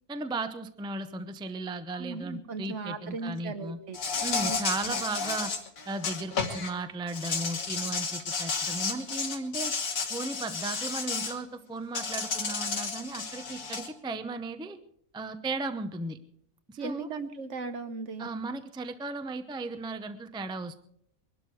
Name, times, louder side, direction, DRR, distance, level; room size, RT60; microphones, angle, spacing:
voice 1, 0.1-3.8 4.2-5.5 5.9-9.7 10.1-14.8 15.1-16.2 16.7-17.1 18.2-20.8, right 2 dB, 5° right, 10 dB, 0.5 m, -36 dB
voice 2, 1.9-4.0 4.5-4.6 4.8-4.9 16.8-18.3, right 4 dB, 60° right, 9 dB, 1.4 m, -37 dB
Insect, 3.9-6.7 7.1-11.3 11.9-13.9, left 4 dB, 80° left, 2.0 m, -32 dB
22.0 x 12.0 x 4.7 m, 0.69 s
omnidirectional pair, 1.4 m